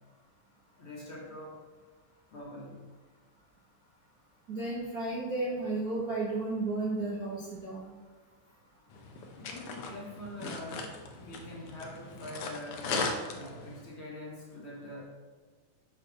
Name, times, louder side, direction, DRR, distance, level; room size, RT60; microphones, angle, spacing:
voice 1, 0.8-1.6 2.3-2.9 9.4-12.9 13.3-15.0, left 1 dB, 50° left, -4 dB, 2.0 m, -44 dB
voice 2, 4.5-7.9, right 2 dB, 50° right, -6 dB, 1.1 m, -33 dB
sound 1, 8.9-13.9, left 3 dB, 75° left, 1.3 m, -38 dB
6.5 x 4.4 x 6.3 m, 1.4 s
omnidirectional pair, 3.6 m